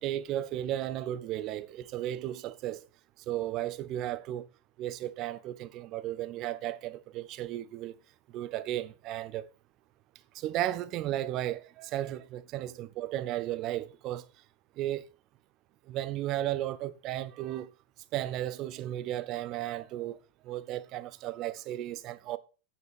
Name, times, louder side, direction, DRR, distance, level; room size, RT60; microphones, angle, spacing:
voice 1, 0.0-2.8 3.3-4.4 4.8-7.9 8.3-9.5 10.3-14.3 14.8-15.0 15.9-17.7 18.1-20.2 20.4-22.4, right 13 dB, 35° right, 0.7 m, -34 dB
9.3 x 6.9 x 4.6 m
figure-of-eight pair, 90°, 0 cm